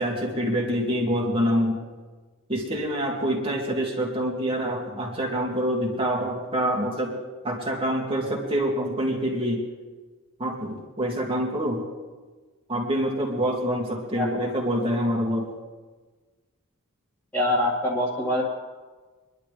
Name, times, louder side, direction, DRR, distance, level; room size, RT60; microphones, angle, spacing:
voice 1, 0.0-1.8 2.5-7.2 7.4-9.6 10.4-11.8 12.7-15.5, equal, 25° right, -1 dB, 2.4 m, -26 dB
voice 2, 17.3-18.4, left 1 dB, 10° left, -8 dB, 2.3 m, -24 dB
25.0 x 11.5 x 3.4 m, 1.3 s
head